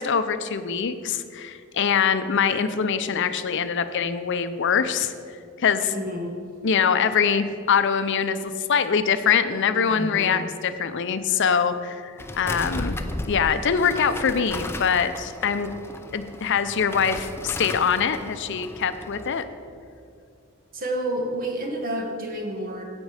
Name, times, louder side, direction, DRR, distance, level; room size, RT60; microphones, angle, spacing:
voice 1, 0.0-5.1 5.6-5.9 6.6-13.0 13.3-15.7 16.1-19.4, left 6 dB, 60° left, 11 dB, 0.5 m, -23 dB
voice 2, 5.9-6.4 9.9-10.4 20.7-22.8, right 1 dB, 45° right, 2 dB, 1.4 m, -30 dB
sound 1, 12.2-19.4, left 1 dB, 10° left, 0.4 m, -35 dB
15.5 x 5.3 x 4.9 m, 2.3 s
head